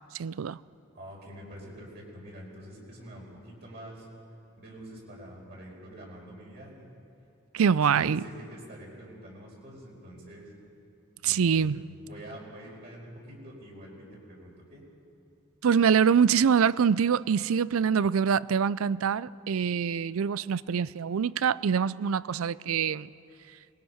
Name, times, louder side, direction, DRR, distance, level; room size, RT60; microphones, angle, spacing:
voice 1, 0.1-0.6 7.5-8.2 11.2-11.8 15.6-23.1, right 7 dB, 75° right, 0.4 m, -25 dB
voice 2, 0.9-4.1 4.6-6.9 7.6-10.5 11.2-11.7 12.0-14.8, right 1 dB, 50° right, 5.1 m, -46 dB
26.0 x 20.5 x 5.8 m
head